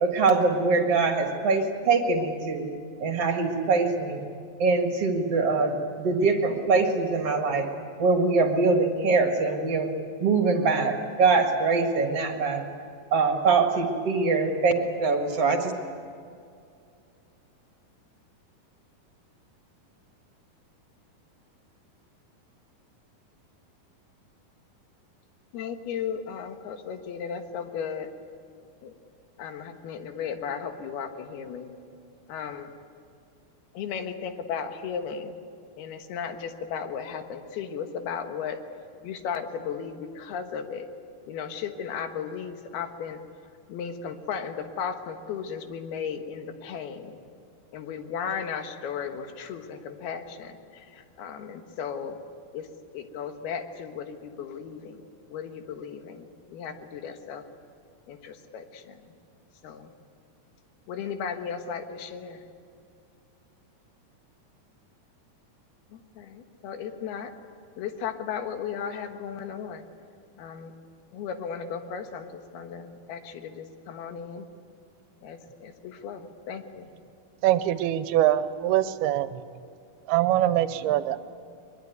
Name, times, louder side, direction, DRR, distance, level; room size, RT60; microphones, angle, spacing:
voice 1, 0.0-2.7 3.0-4.2 4.6-7.7 8.0-9.9 10.2-12.6 13.1-14.7 15.0-15.7, right 4 dB, 50° right, 3 dB, 2.3 m, -23 dB
voice 2, 25.5-28.1 28.8-28.9 29.4-31.7 32.3-32.7 33.7-35.4 35.8-38.6 39.0-40.9 41.3-43.2 43.7-47.2 47.7-52.2 52.5-52.7 52.9-55.0 55.3-57.4 58.1-59.0 59.6-59.9 60.9-62.4 65.9-67.3 67.8-69.8 70.4-70.7 71.1-74.5 75.2-76.9, left 7 dB, 80° left, 6 dB, 3.4 m, -35 dB
voice 3, 77.4-79.4 80.1-81.2, right 13 dB, 85° right, 12 dB, 2.7 m, -23 dB
22.5 x 22.0 x 9.4 m, 2.4 s
omnidirectional pair, 4.5 m